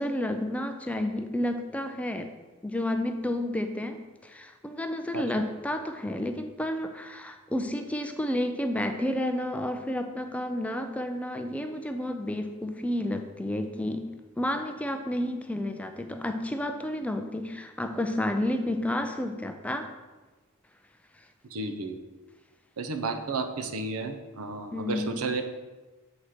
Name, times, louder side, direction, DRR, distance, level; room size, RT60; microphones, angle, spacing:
voice 1, 0.0-2.3 2.6-14.1 14.4-19.9 24.7-25.2, left 1 dB, 5° left, 6 dB, 0.4 m, -31 dB
voice 2, 21.5-22.0 22.8-25.4, right 3 dB, 80° right, 7 dB, 0.7 m, -32 dB
7.4 x 4.2 x 4.9 m, 1.2 s
head